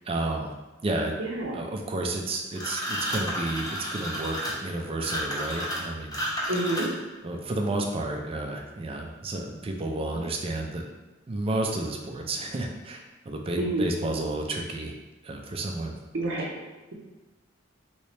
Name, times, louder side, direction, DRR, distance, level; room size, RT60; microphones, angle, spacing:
voice 1, 0.1-0.5 0.8-1.2 1.5-6.2 7.2-10.8 11.3-14.9 15.2-16.0 16.3-16.5, right 2 dB, 30° right, 2 dB, 0.4 m, -31 dB
voice 2, 1.2-1.7 6.5-6.9 13.6-13.9 16.1-16.5, right 1 dB, 70° right, -2 dB, 0.6 m, -28 dB
sound 1, 2.5-7.1, equal, 20° left, 0.8 m, -31 dB
3.1 x 2.8 x 3.2 m, 1.1 s
head